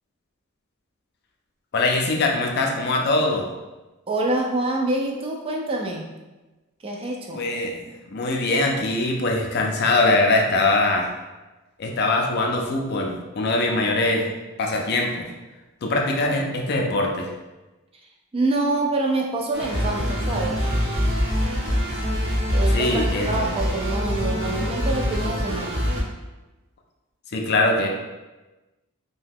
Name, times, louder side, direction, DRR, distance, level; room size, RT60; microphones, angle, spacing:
voice 1, 1.7-3.5 7.3-7.8 8.1-11.1 11.8-14.3 14.6-15.3 15.8-17.3 22.7-23.5 27.3-27.9, left 2 dB, 50° left, 1 dB, 0.4 m, -22 dB
voice 2, 4.1-6.1 6.8-7.4 18.3-20.6 22.5-25.8, right 2 dB, 25° right, 0 dB, 0.3 m, -26 dB
sound 1, 19.5-26.0, equal, 55° right, 0.7 m, -24 dB
2.7 x 2.2 x 3.5 m, 1.1 s
head